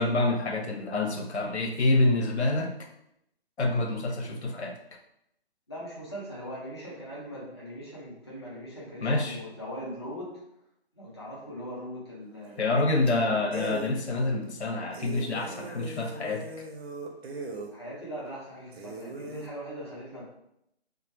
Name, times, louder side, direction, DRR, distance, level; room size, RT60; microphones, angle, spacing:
voice 1, 0.0-2.7 3.6-4.8 9.0-9.4 12.6-16.5, left 2 dB, 90° left, 2 dB, 0.5 m, -27 dB
voice 2, 5.7-10.3 10.9-12.6 13.0-13.7 17.7-20.2, equal, 25° left, -7 dB, 0.5 m, -40 dB
sound 1, 12.4-12.8 13.1-13.2 13.5-13.9 14.4-14.5 14.9-17.7 18.2-18.3 18.7-19.5, right 3 dB, 70° right, 0.5 m, -39 dB
2.2 x 2.1 x 2.8 m, 0.79 s
figure-of-eight pair, 155°, 32 cm